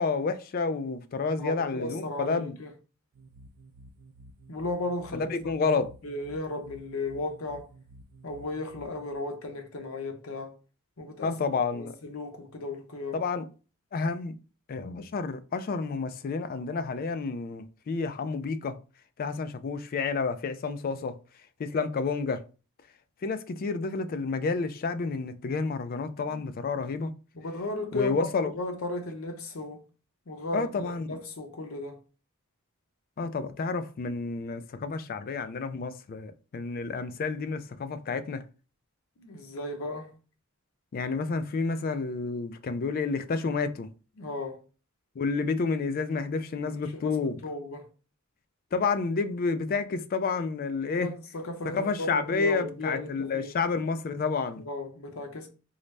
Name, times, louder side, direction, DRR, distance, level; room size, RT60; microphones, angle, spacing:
voice 1, 0.0-2.6 5.1-5.9 11.2-11.9 13.1-13.4 13.9-14.4 14.7-18.7 19.2-21.1 21.6-22.4 23.2-27.1 27.9-28.5 30.5-31.2 33.2-38.4 40.9-43.9 45.2-47.4 48.7-51.1 51.7-54.6, left 4 dB, 45° left, 0.3 m, -30 dB
voice 2, 1.4-2.7 4.5-5.4 5.7-7.7 8.2-10.5 11.0-11.4 11.7-13.2 27.3-29.8 30.3-32.0 39.2-40.1 44.2-44.6 46.6-47.9 51.0-53.5 54.6-55.5, left 2 dB, 75° left, 0.8 m, -35 dB
sound 1, 3.1-9.2, right 1 dB, 75° right, 0.4 m, -52 dB
3.8 x 2.1 x 3.2 m
head